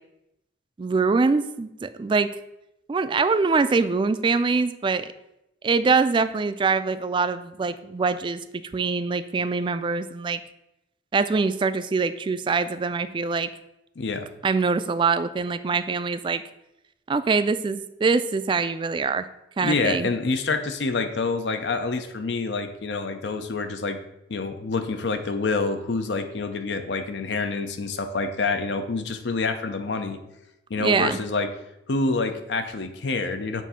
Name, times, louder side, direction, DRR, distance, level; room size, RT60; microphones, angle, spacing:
voice 1, 0.8-2.3 2.9-5.1 5.6-8.4 8.7-10.4 11.1-13.5 14.4-16.4 17.1-19.3 19.6-20.1 30.8-31.2, right 4 dB, 30° right, 12 dB, 0.3 m, -23 dB
voice 2, 14.0-14.3 19.6-24.0 24.3-30.2 30.7-31.5 31.9-33.6, left 3 dB, 80° left, 8 dB, 0.6 m, -27 dB
7.2 x 2.7 x 5.6 m, 0.87 s
head